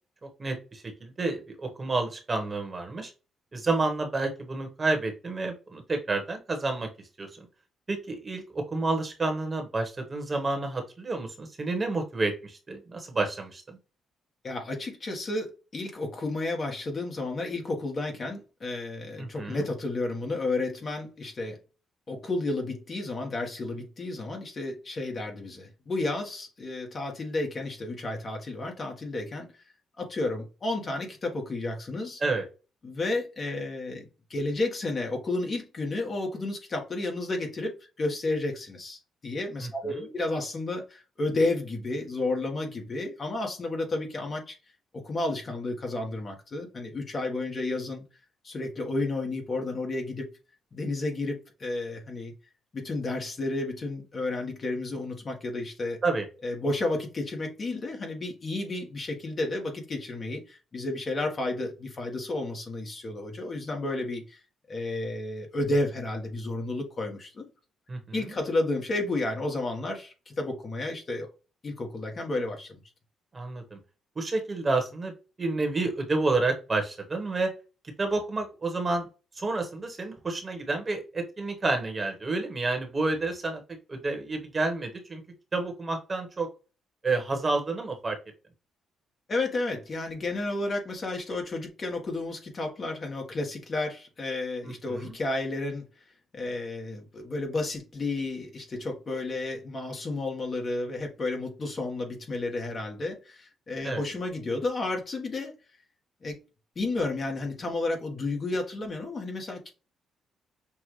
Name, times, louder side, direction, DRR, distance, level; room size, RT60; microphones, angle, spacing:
voice 1, 0.4-3.1 3.5-6.9 7.2-7.4 7.9-13.8 19.2-19.6 32.2-32.4 39.6-40.1 56.0-56.3 67.9-68.2 73.3-73.8 74.1-75.1 75.4-77.5 78.0-79.1 79.4-83.6 83.9-85.2 85.5-86.5 87.0-88.2 94.9-95.1 103.8-104.0, right 3 dB, 30° right, 1.3 m, -29 dB
voice 2, 14.4-21.6 22.1-29.5 30.0-32.2 32.8-34.0 34.3-44.6 45.0-48.0 48.4-50.3 50.7-52.3 52.7-56.0 56.4-64.4 64.7-67.4 68.1-71.3 71.6-72.8 89.3-95.8 96.3-105.5 106.2-106.3 106.7-109.7, left 2 dB, 40° left, 1.4 m, -32 dB
6.0 x 2.4 x 3.1 m
cardioid pair, 90°, 0 cm